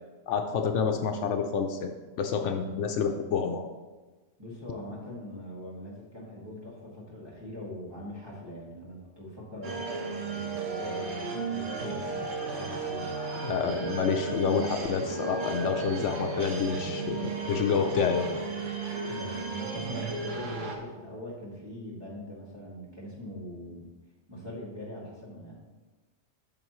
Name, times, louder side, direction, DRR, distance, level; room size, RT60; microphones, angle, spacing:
voice 1, 0.3-1.9 2.2-3.6 13.4-18.2, left 6 dB, 75° left, 5 dB, 1.0 m, -28 dB
voice 2, 4.4-9.9 10.2-11.2 11.5-13.1 19.1-23.9 24.3-25.5, left 1 dB, 20° right, -6 dB, 2.1 m, -41 dB
sound 1, 9.6-20.8, right 4 dB, 75° right, 1.3 m, -34 dB
8.9 x 6.3 x 3.1 m, 1.3 s
omnidirectional pair, 1.3 m